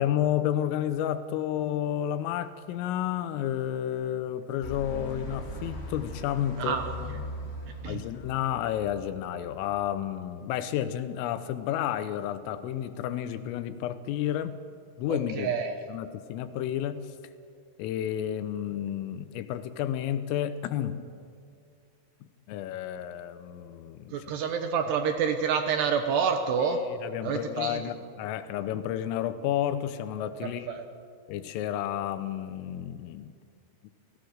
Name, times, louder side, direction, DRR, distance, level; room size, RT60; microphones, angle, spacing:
voice 1, 0.0-7.1 7.9-14.5 15.0-15.5 15.9-17.1 17.8-21.1 22.5-24.3 26.6-30.8 31.3-33.3, left 11 dB, 85° left, 11 dB, 3.6 m, -31 dB
sound 1, 4.6-9.6, equal, 20° left, 1.7 m, -40 dB
voice 2, 6.6-6.9 7.8-8.0 15.1-15.7 24.1-26.8 27.2-27.8 30.4-30.8, right 6 dB, 75° right, 6 dB, 2.6 m, -28 dB
29.0 x 17.5 x 6.6 m, 2.2 s
omnidirectional pair, 5.8 m